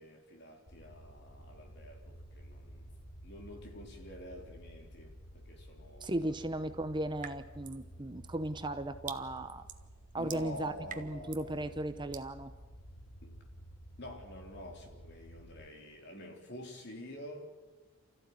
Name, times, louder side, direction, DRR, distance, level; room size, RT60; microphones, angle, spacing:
voice 1, 0.0-2.9 3.2-6.3 10.2-11.7 13.2-13.4 14.0-17.5, left 1 dB, 55° left, 4.0 m, -48 dB
sound 1, 0.7-15.7, equal, 90° left, 4.0 m, -52 dB
voice 2, 6.0-9.7 10.1-12.5, right 1 dB, 20° right, 0.8 m, -36 dB
sound 2, 7.2-7.9 8.3-11.5 12.1-12.3, right 8 dB, 40° right, 1.2 m, -47 dB
29.0 x 14.5 x 9.6 m
head